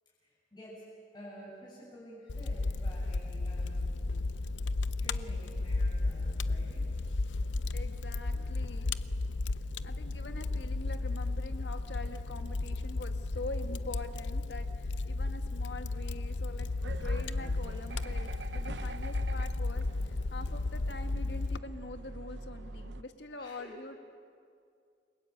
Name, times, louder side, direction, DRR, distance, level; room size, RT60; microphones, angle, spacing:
voice 1, 0.2-0.9 1.1-4.3 5.0-6.8 23.4-23.7, equal, 25° left, -6 dB, 7.1 m, -50 dB
Fire, 2.3-21.6, left 2 dB, 85° left, 0.7 m, -34 dB
voice 2, 7.3-9.0 9.8-24.0, left 2 dB, 70° left, 7 dB, 1.9 m, -45 dB
sound 1, 16.8-23.0, right 2 dB, 70° right, 0.9 m, -45 dB
29.5 x 22.5 x 8.8 m, 2.3 s
head